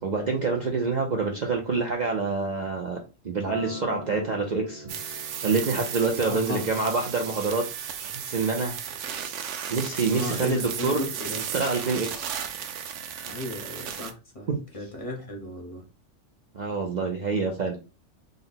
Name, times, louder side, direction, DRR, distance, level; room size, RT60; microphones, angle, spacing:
voice 1, 0.0-3.0 3.2-5.0 5.4-7.6 8.0-8.7 9.7-11.1 11.3-12.3 14.5-14.6 16.5-17.8, right 4 dB, 50° right, 1 dB, 0.6 m, -27 dB
Acoustic guitar, 3.5-8.7, right 2 dB, 70° left, 1.3 m, -43 dB
sound 1, 4.9-14.1, right 8 dB, 80° right, 0.9 m, -35 dB
voice 2, 6.2-6.7 10.1-11.4 13.2-14.5 14.7-15.8, left 1 dB, 30° left, 0 dB, 0.8 m, -35 dB
3.9 x 2.1 x 3.9 m, 0.32 s
omnidirectional pair, 1.2 m